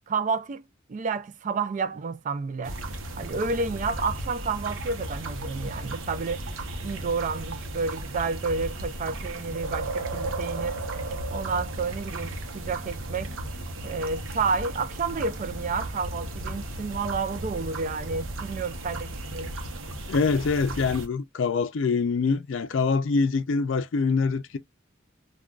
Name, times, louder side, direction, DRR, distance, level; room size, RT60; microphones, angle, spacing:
voice 1, 0.1-0.6 0.9-2.8 3.2-6.5 6.8-11.0 11.3-13.3 13.8-19.5, right 4 dB, 40° right, 0.3 m, -30 dB
sound 1, 2.6-21.1, right 1 dB, 75° right, 0.8 m, -35 dB
voice 2, 20.1-24.6, left 4 dB, 70° left, 0.4 m, -24 dB
3.6 x 2.3 x 2.3 m
head